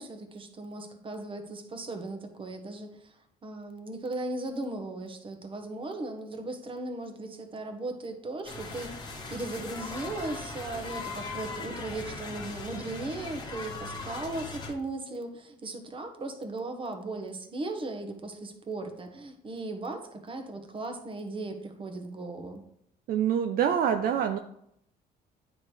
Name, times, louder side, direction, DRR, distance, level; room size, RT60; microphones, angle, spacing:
voice 1, 0.0-22.6, right 2 dB, 30° right, 5 dB, 1.1 m, -37 dB
sound 1, 8.4-14.7, left 3 dB, 25° left, 1.2 m, -39 dB
voice 2, 23.1-24.4, right 8 dB, 60° right, 6 dB, 0.5 m, -25 dB
9.4 x 4.5 x 3.3 m, 0.74 s
cardioid pair, 110°, 17 cm